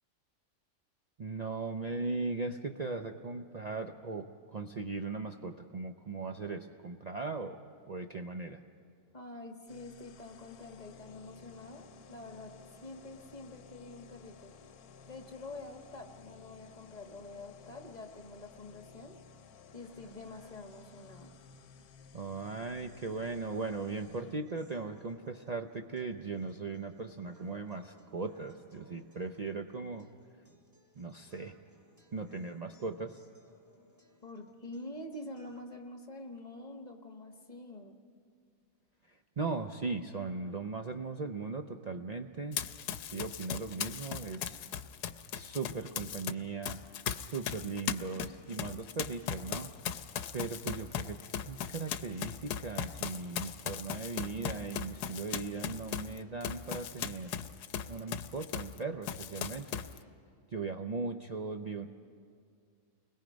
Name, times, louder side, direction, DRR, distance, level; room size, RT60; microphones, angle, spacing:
voice 1, 1.2-7.6 7.9-8.6 22.1-30.1 31.0-31.6 32.1-33.2 39.1-42.6 43.0-44.6 45.3-46.8 47.2-49.7 50.3-51.2 51.4-57.3 57.9-59.8 60.5-61.9, right 4 dB, 75° right, 5 dB, 0.3 m, -38 dB
voice 2, 9.1-12.5 12.8-14.5 15.1-19.1 19.7-21.3 34.2-38.0, left 2 dB, 30° left, 4 dB, 1.3 m, -47 dB
sound 1, 9.7-24.4, left 5 dB, 75° left, 1.2 m, -56 dB
sound 2, 19.7-35.7, left 1 dB, 10° right, 2.1 m, -65 dB
Run, 42.5-46.3 46.6-58.8 59.0-60.0, left 9 dB, 90° left, 1.3 m, -38 dB
29.5 x 21.0 x 5.1 m, 2.2 s
omnidirectional pair, 1.7 m